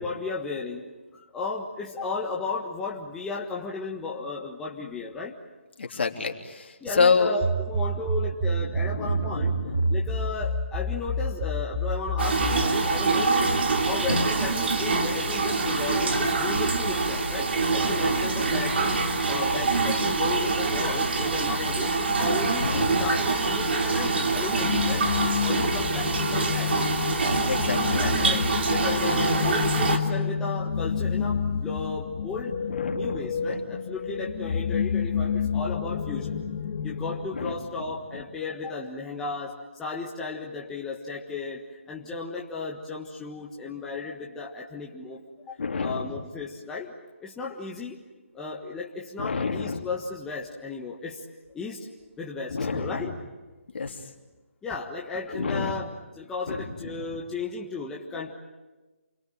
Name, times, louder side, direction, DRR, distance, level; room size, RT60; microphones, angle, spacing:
voice 1, 0.0-5.3 6.8-9.6 9.9-13.6 13.9-19.0 19.3-22.7 23.0-25.1 25.4-26.7 28.0-32.5 32.9-36.4 36.8-46.9 47.2-48.0 48.3-51.2 51.5-51.9 52.2-53.2 54.6-58.3, left 4 dB, 5° left, -3 dB, 1.5 m, -34 dB
voice 2, 5.8-7.3 8.9-10.0 22.6-23.0 27.4-28.3 32.7-33.6 37.3-37.5 45.6-46.1 49.2-49.9 52.5-53.1 53.7-53.9 55.3-55.7 56.5-57.0, left 4 dB, 55° left, 2 dB, 3.4 m, -28 dB
sound 1, 7.4-12.7, right 2 dB, 25° right, 7.6 m, -28 dB
sound 2, 12.2-30.0, right 3 dB, 55° right, 3.1 m, -25 dB
sound 3, 24.5-37.3, left 6 dB, 30° left, 1.9 m, -29 dB
29.0 x 23.0 x 9.0 m, 1.2 s
figure-of-eight pair, 160°, 7 cm